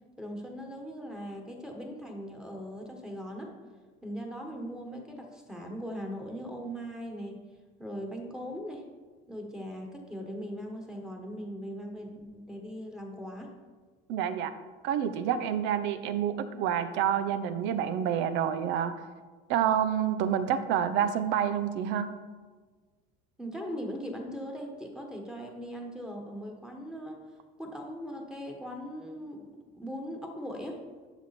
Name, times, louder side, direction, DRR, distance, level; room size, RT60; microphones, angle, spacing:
voice 1, 0.2-3.5 4.0-7.4 7.8-8.8 9.3-13.5 23.4-27.2 27.6-30.8, equal, 5° right, 1 dB, 1.5 m, -39 dB
voice 2, 14.1-14.5 14.8-18.9 19.5-22.1, right 9 dB, 70° right, 11 dB, 0.9 m, -28 dB
12.0 x 6.2 x 4.3 m, 1.4 s
cardioid pair, 145°, 19 cm